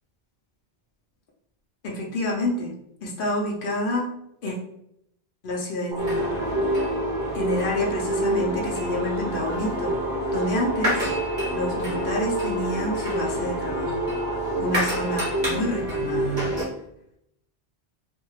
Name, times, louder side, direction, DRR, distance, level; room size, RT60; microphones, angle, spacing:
voice 1, 1.8-4.1 4.4-4.6 5.4-6.3 7.3-9.9 10.3-11.1 11.5-14.1 14.6-16.5, left 1 dB, 60° left, -1 dB, 0.7 m, -28 dB
sound 1, 5.9-15.4, right 1 dB, 25° right, 0.7 m, -32 dB
sound 2, 6.0-16.6, equal, 45° right, 1.2 m, -27 dB
3.1 x 2.6 x 2.3 m, 0.77 s
omnidirectional pair, 1.1 m